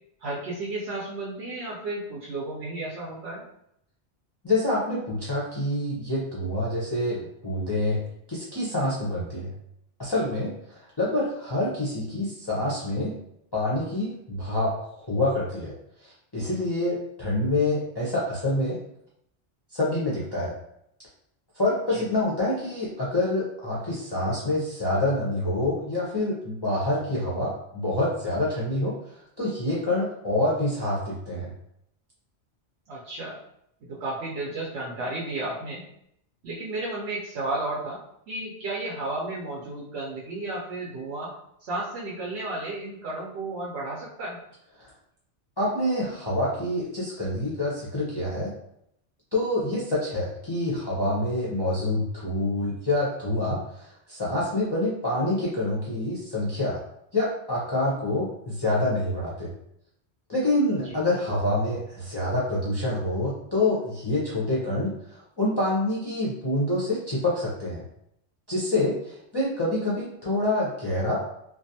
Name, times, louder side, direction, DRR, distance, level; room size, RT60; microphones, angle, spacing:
voice 1, 0.2-3.4 21.9-22.0 32.9-33.4 33.8-35.8 36.4-38.0 38.3-41.3 41.6-44.4 60.8-61.0, right 2 dB, 75° right, -4 dB, 0.8 m, -33 dB
voice 2, 4.4-8.0 8.3-9.5 10.0-13.1 13.5-15.7 16.0-18.8 19.7-20.5 21.5-31.5 44.8-44.9 45.6-48.5 49.3-56.8 57.1-59.5 60.3-67.8 68.5-71.2, left 1 dB, 30° left, -8 dB, 0.5 m, -27 dB
2.4 x 2.2 x 2.6 m, 0.75 s
omnidirectional pair, 1.1 m